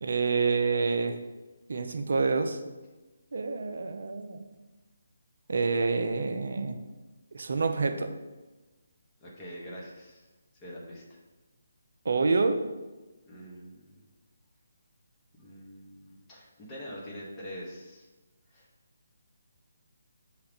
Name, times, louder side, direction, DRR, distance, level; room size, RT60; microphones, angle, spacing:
voice 1, 0.0-1.2 1.7-2.6 3.3-4.4 5.5-6.8 7.3-8.1 12.0-12.6, right 4 dB, 60° right, 7 dB, 0.4 m, -27 dB
voice 2, 9.2-10.3 10.6-11.2 13.3-14.0 15.4-18.1 18.5-18.7, equal, 20° left, -5 dB, 0.9 m, -44 dB
5.6 x 2.4 x 3.5 m, 1.2 s
figure-of-eight pair, 150°, 0 cm